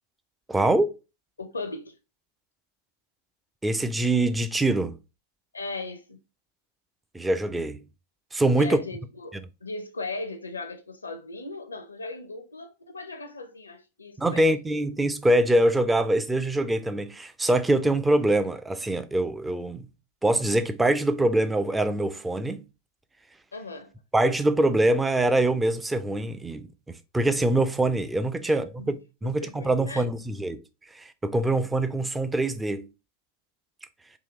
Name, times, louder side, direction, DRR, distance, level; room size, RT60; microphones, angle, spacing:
voice 1, 0.5-0.9 3.6-5.0 7.1-7.8 8.3-8.8 14.2-19.9 20.2-22.6 24.1-30.6 30.9-32.9, right 1 dB, 10° right, 0.4 m, -24 dB
voice 2, 1.4-2.0 5.5-6.2 8.6-14.5 23.5-23.9 28.4-30.1 31.4-31.5, left 3 dB, 75° left, 0.5 m, -38 dB
3.7 x 2.7 x 3.0 m
figure-of-eight pair, 90°, 0 cm